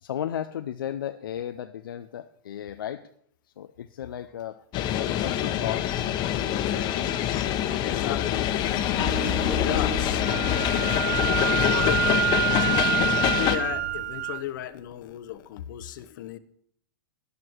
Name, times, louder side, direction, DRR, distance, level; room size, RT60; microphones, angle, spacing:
voice 1, 0.0-3.1 3.6-5.9, left 10 dB, 85° left, 0.6 m, -35 dB
sound 1, 4.7-13.6, left 11 dB, 40° left, 1.2 m, -25 dB
voice 2, 7.8-8.5 9.4-10.3 11.4-16.4, left 13 dB, 65° left, 0.9 m, -35 dB
sound 2, 9.0-14.9, right 4 dB, 45° right, 2.3 m, -39 dB
Wind instrument woodwind instrument, 10.3-14.4, right 12 dB, 65° right, 0.9 m, -27 dB
12.5 x 10.5 x 4.6 m
hypercardioid pair, 115°, 11 cm